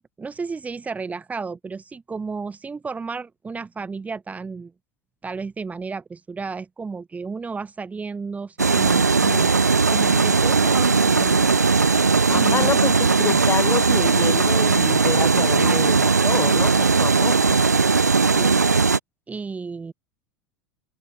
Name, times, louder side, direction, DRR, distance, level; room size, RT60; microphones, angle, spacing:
voice 1, 0.2-4.7 5.2-9.5 9.9-11.5 12.3-12.7 15.6-15.9 18.3-18.5 19.3-19.9, right 4 dB, 15° right, 3.5 m, -33 dB
sound 1, 8.6-19.0, right 4 dB, 90° right, 0.6 m, -18 dB
voice 2, 12.3-17.6, left 7 dB, 25° left, 4.5 m, -28 dB
figure-of-eight pair, 85°, 9 cm